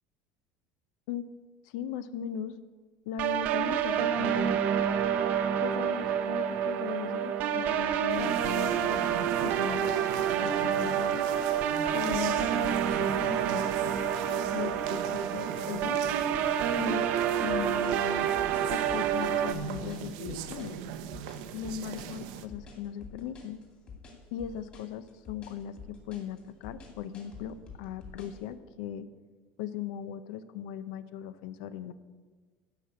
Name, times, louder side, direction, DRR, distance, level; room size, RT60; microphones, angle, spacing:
voice 1, 1.6-2.6 3.1-4.6 5.6-9.1 9.4-11.2 11.9-13.7 14.5-16.0 16.8-17.1 17.4-18.3 18.7-20.8 21.5-23.6 24.3-29.1 29.6-31.9, left 9 dB, 80° left, 13 dB, 0.6 m, -38 dB
sound 1, 3.2-19.5, right 9 dB, 45° right, 0.6 m, -28 dB
sound 2, 8.1-22.5, right 8 dB, 75° right, 0.8 m, -42 dB
sound 3, 17.5-28.4, left 4 dB, 30° left, 2.4 m, -48 dB
11.5 x 5.9 x 8.1 m, 1.4 s
cardioid pair, 175°, 4 cm